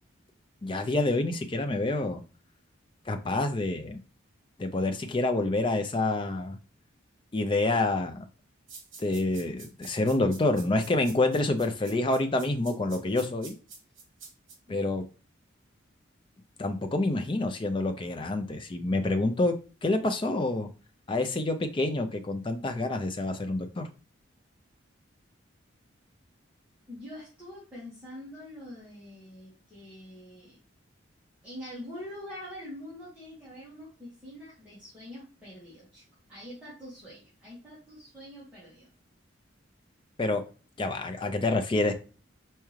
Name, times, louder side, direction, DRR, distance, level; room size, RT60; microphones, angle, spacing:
voice 1, 0.6-2.2 3.1-4.0 4.6-6.6 7.3-8.3 9.0-13.5 14.7-15.1 16.6-19.6 19.8-20.7 21.1-23.9 40.2-40.4 40.8-41.9, left 2 dB, 25° left, 6 dB, 0.4 m, -27 dB
sound 1, 8.7-14.6, right 5 dB, 70° right, 1.3 m, -47 dB
voice 2, 26.9-30.6 31.4-36.0 36.3-38.9, left 1 dB, 5° right, -10 dB, 1.6 m, -45 dB
4.4 x 3.6 x 3.1 m, 0.36 s
head